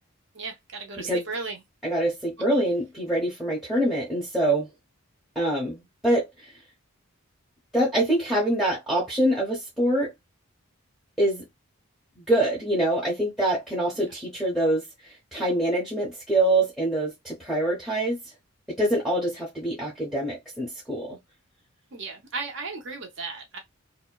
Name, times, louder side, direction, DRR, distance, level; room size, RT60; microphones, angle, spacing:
voice 1, 0.3-1.6 13.9-14.0 21.9-23.6, right 4 dB, 55° right, 0.8 m, -35 dB
voice 2, 1.8-4.7 5.4-6.5 7.7-10.1 11.2-11.4 12.2-18.2 18.7-21.2, right 1 dB, ahead, 0.7 m, -25 dB
2.7 x 2.1 x 2.2 m
head